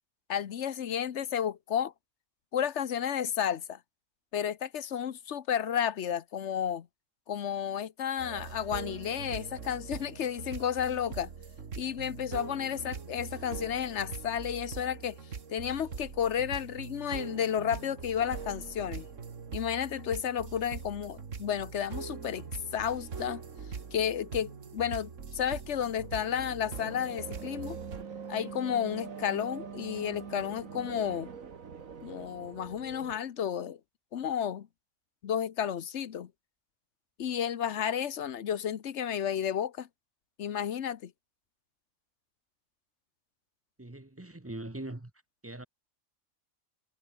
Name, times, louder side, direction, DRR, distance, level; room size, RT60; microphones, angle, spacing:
voice 1, 0.3-1.9 2.5-3.8 4.3-6.9 7.3-11.3 11.8-15.2 15.5-19.1 19.5-22.4 22.7-23.4 23.9-27.8 28.3-31.3 32.0-33.8 34.1-34.7 35.2-36.3 37.2-39.9 40.4-41.1, left 9 dB, 60° left, 1.2 m, -32 dB
sound 1, 8.2-28.0, right 5 dB, 65° right, 2.1 m, -42 dB
sound 2, 25.8-33.2, right 6 dB, 85° right, 2.1 m, -44 dB
voice 2, 43.8-45.1 45.4-45.7, right 1 dB, 10° right, 1.2 m, -41 dB
omnidirectional pair, 1.4 m